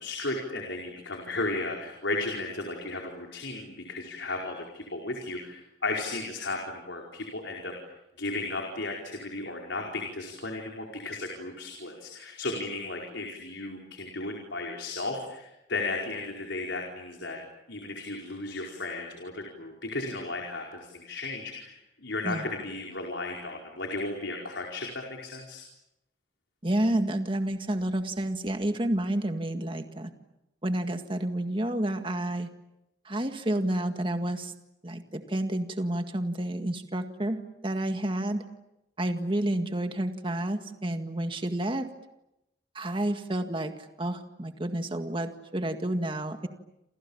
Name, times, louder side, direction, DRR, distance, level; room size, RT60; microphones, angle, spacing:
voice 1, 0.0-7.7 8.2-17.4 17.7-25.6, left 2 dB, 85° left, 0 dB, 4.9 m, -35 dB
voice 2, 26.6-30.1 30.6-32.5 33.1-34.5 34.8-38.4 39.0-41.9 42.8-43.7 44.0-46.5, right 1 dB, 30° right, 6 dB, 1.9 m, -30 dB
29.0 x 28.0 x 7.2 m, 0.89 s
head